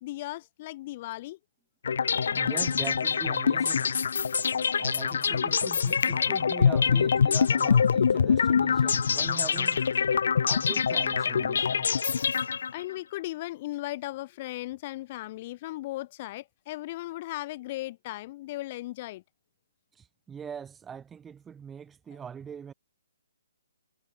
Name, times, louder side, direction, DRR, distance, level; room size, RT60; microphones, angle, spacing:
voice 1, 0.0-1.4 12.7-19.2, left 17 dB, 35° left, 2.4 m, -37 dB
sound 1, 1.8-12.9, left 6 dB, 55° left, 1.2 m, -25 dB
voice 2, 2.3-3.9 4.8-9.8 10.4-11.9 20.0-22.7, right 7 dB, 10° right, 3.6 m, -42 dB
figure-of-eight pair, 130°, 0 cm